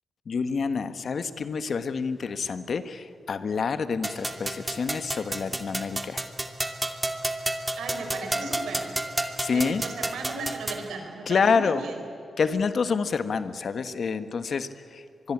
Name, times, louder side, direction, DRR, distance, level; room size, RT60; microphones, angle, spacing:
voice 1, 0.3-6.2 9.4-9.8 11.3-11.8 12.4-15.3, left 5 dB, 65° left, 11 dB, 1.4 m, -27 dB
sound 1, 4.0-10.9, right 1 dB, 20° right, 2.5 m, -31 dB
voice 2, 7.8-8.9 9.5-12.0, right 3 dB, 85° right, 4 dB, 4.4 m, -36 dB
25.0 x 22.0 x 8.7 m, 2.7 s
supercardioid pair, 50°, 0 cm